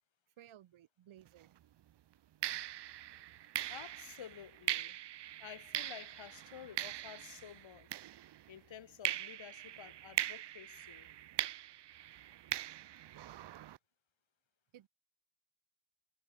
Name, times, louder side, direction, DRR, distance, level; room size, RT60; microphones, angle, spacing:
voice 1, 0.4-1.6 14.7-14.9, right 12 dB, 80° right, 1.6 m, -58 dB
sound 1, 1.3-1.5 2.4-8.6 9.0-13.8, right 12 dB, 60° right, 0.7 m, -41 dB
voice 2, 3.7-5.0 5.4-8.0 8.5-11.1, left 9 dB, 70° left, 3.7 m, -52 dB
wide cardioid pair, 145°, 47 cm